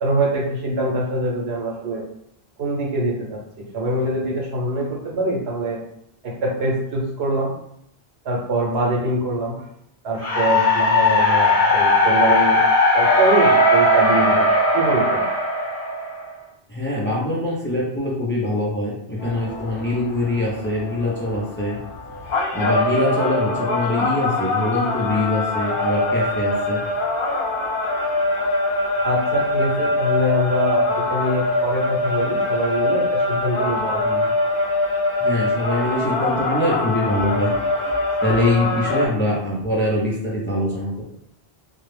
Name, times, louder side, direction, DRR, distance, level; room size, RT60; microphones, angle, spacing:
voice 1, 0.0-2.0 2.6-3.4 3.7-5.8 6.2-7.5 8.2-9.6 10.0-12.6 12.9-14.5 14.7-15.3 29.0-34.0, right 1 dB, 85° right, -3 dB, 1.0 m, -24 dB
sound 1, 10.2-16.3, left 1 dB, 40° left, 0.8 m, -17 dB
voice 2, 16.7-21.8 22.5-26.8 34.0-34.3 35.2-37.9 38.2-41.0, left 1 dB, 20° left, -5 dB, 0.3 m, -23 dB
sound 2, 19.2-39.1, left 2 dB, 80° left, 0.8 m, -23 dB
2.3 x 2.1 x 3.1 m, 0.73 s
omnidirectional pair, 1.0 m